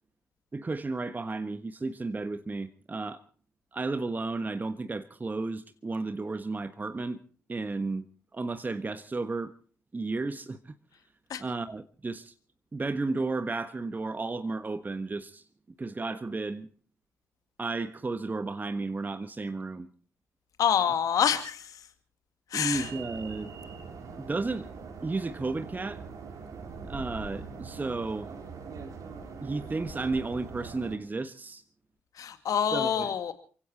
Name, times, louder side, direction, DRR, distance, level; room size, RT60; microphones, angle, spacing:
voice 1, 0.5-3.2 3.7-7.2 7.5-8.0 8.3-9.5 9.9-10.7 11.4-12.3 12.7-15.4 15.8-16.7 17.6-19.9 22.5-23.5 24.3-24.7 25.0-26.0 26.9-28.3 29.4-31.6 32.7-33.1, right 3 dB, 25° right, 1.3 m, -33 dB
voice 2, 20.6-21.6 22.5-22.9 32.2-33.3, left 8 dB, 55° left, 2.0 m, -26 dB
sound 1, 22.7-31.0, right 4 dB, 55° right, 3.8 m, -42 dB
29.0 x 16.5 x 3.0 m
figure-of-eight pair, 40°, 7 cm